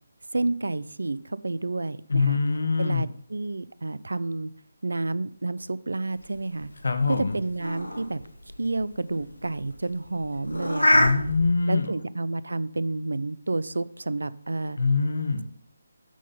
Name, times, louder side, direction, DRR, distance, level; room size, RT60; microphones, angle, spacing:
voice 1, 0.3-2.4 2.8-4.5 4.8-6.7 7.1-8.2 8.6-11.1 11.7-14.8, right 2 dB, 75° right, 18 dB, 0.4 m, -30 dB
voice 2, 2.1-3.1 6.8-7.4 10.9-11.9 14.8-15.4, left 4 dB, 65° left, 7 dB, 1.1 m, -24 dB
sound 1, 6.2-11.5, left 1 dB, 90° left, 1.3 m, -27 dB
9.1 x 3.9 x 5.5 m, 0.64 s
figure-of-eight pair, 150°, 0 cm